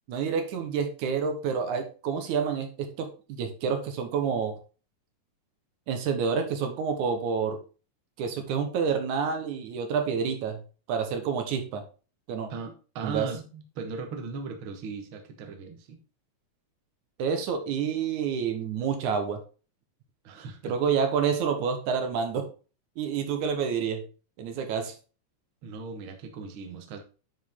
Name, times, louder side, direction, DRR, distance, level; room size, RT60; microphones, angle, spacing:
voice 1, 0.1-3.1 3.4-4.6 5.9-7.6 8.2-10.6 10.9-11.8 12.3-12.5 13.0-13.3 17.2-19.4 20.6-22.5 23.0-24.0 24.4-24.9, right 6 dB, 75° right, 6 dB, 2.4 m, -28 dB
voice 2, 12.5-16.0 20.2-20.7 25.6-27.0, right 4 dB, 55° right, 5 dB, 1.5 m, -38 dB
9.1 x 4.8 x 3.7 m, 0.35 s
omnidirectional pair, 3.6 m